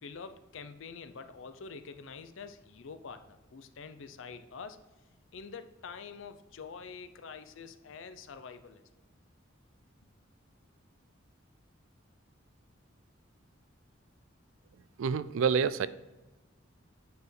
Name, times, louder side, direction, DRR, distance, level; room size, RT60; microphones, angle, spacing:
voice 1, 0.0-4.8 5.3-8.8, left 5 dB, 70° left, 10 dB, 0.5 m, -46 dB
voice 2, 15.0-15.9, right 6 dB, 85° right, 16 dB, 0.4 m, -27 dB
8.5 x 4.6 x 3.2 m, 1.1 s
head